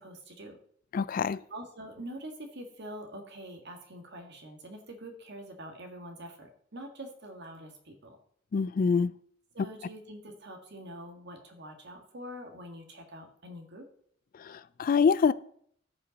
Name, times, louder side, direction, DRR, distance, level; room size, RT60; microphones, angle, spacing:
voice 1, 0.0-0.6 1.5-8.2 9.5-13.8, right 1 dB, 60° right, 1.7 m, -45 dB
voice 2, 0.9-1.4 8.5-9.1 14.4-15.3, left 5 dB, 45° left, 0.3 m, -25 dB
14.5 x 5.5 x 4.0 m
head